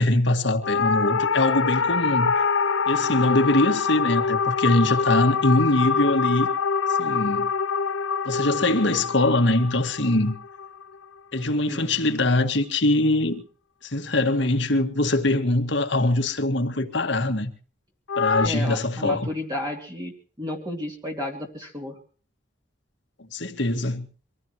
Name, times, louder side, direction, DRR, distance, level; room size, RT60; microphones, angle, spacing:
voice 1, 0.0-2.4 2.9-6.5 7.0-7.5 8.3-10.3 11.3-13.4 13.8-17.5 18.2-19.3 23.3-24.0, left 2 dB, 65° left, 1.9 m, -22 dB
sound 1, 0.6-11.1 18.1-18.5, left 5 dB, 90° left, 0.9 m, -25 dB
voice 2, 18.4-20.1 20.4-22.0, left 1 dB, 20° right, 2.6 m, -32 dB
25.0 x 15.5 x 3.0 m
head